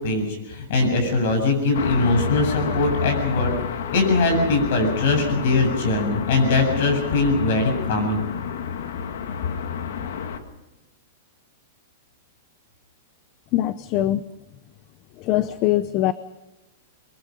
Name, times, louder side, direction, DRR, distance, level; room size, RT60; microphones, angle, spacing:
voice 1, 0.0-3.5 3.9-8.2, left 3 dB, 55° left, 5 dB, 7.6 m, -21 dB
sound 1, 1.7-10.4, left 7 dB, 70° left, 2.1 m, -29 dB
voice 2, 13.5-14.2 15.2-16.1, left 14 dB, 35° left, 14 dB, 0.6 m, -22 dB
23.0 x 22.0 x 5.4 m, 0.99 s
supercardioid pair, 155°, 0 cm